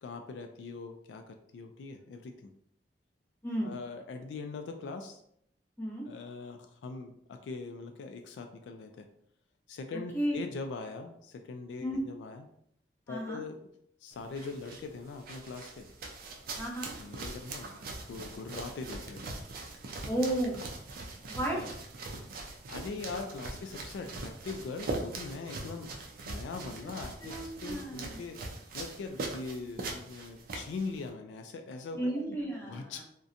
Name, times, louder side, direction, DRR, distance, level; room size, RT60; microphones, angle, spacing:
voice 1, 0.0-2.5 3.6-5.2 6.1-9.1 9.7-12.5 13.1-13.6 14.0-15.9 17.0-19.4 21.5-21.7 22.7-25.9 26.3-28.4 28.7-32.4 32.7-33.0, left 4 dB, 85° left, 5 dB, 0.3 m, -41 dB
voice 2, 13.1-13.4 16.6-16.9 20.1-20.6 21.3-21.6 27.2-28.2 31.9-33.0, right 1 dB, 15° left, -3 dB, 0.6 m, -33 dB
sound 1, 14.1-31.1, right 2 dB, 55° right, 0.4 m, -42 dB
2.7 x 2.1 x 2.4 m, 0.69 s
head